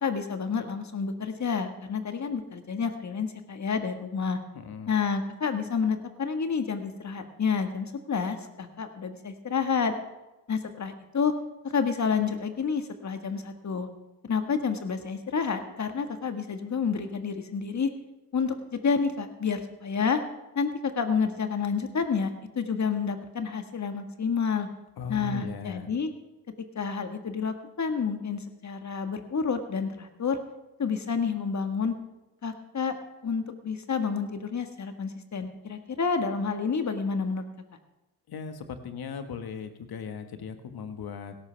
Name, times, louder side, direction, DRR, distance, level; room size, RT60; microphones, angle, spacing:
voice 1, 0.0-4.4 4.9-9.9 10.5-11.3 11.6-13.9 14.2-17.9 18.3-20.2 20.6-24.7 25.1-26.1 26.8-30.4 30.8-31.9 32.4-33.0 33.2-37.4, left 5 dB, 40° left, 7 dB, 1.8 m, -29 dB
voice 2, 4.5-4.9 25.0-25.9 38.3-41.4, left 5 dB, 55° left, 8 dB, 1.7 m, -38 dB
16.5 x 13.5 x 3.5 m, 1.0 s
hypercardioid pair, 50°, 45 cm